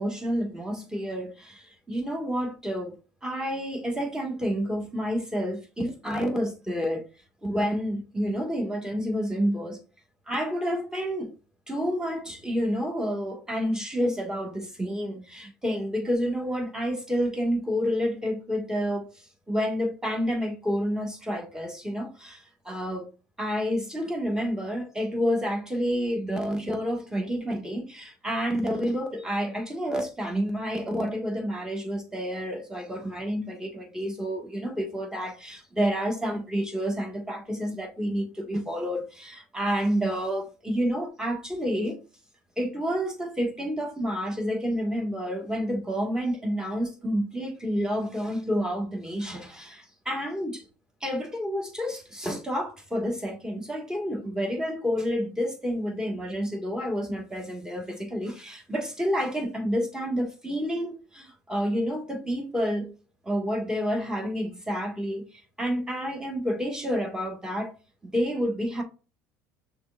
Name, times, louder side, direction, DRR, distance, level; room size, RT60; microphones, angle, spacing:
voice 1, 0.0-2.9 3.2-7.1 7.4-9.8 10.3-11.3 11.7-23.1 23.4-42.0 42.6-50.6 51.0-62.9 63.2-67.7 68.1-68.8, equal, 10° right, 1.6 m, -29 dB
6.2 x 3.4 x 2.5 m
hypercardioid pair, 70°, 9 cm